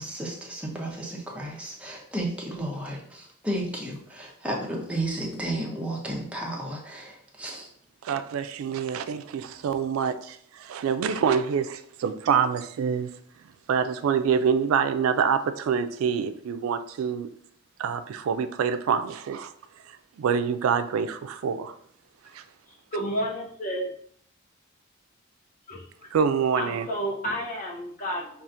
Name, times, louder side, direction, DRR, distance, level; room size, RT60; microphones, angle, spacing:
voice 1, 0.0-7.7, right 1 dB, 5° right, -2 dB, 0.6 m, -33 dB
voice 2, 8.0-13.1 13.7-17.3 17.8-19.5 20.2-21.7 22.3-22.4 26.1-26.9, right 7 dB, 85° right, 10 dB, 0.3 m, -26 dB
voice 3, 22.9-23.9 25.7-25.8 26.6-28.4, equal, 40° left, -2 dB, 0.9 m, -31 dB
5.5 x 2.4 x 2.5 m, 0.63 s
head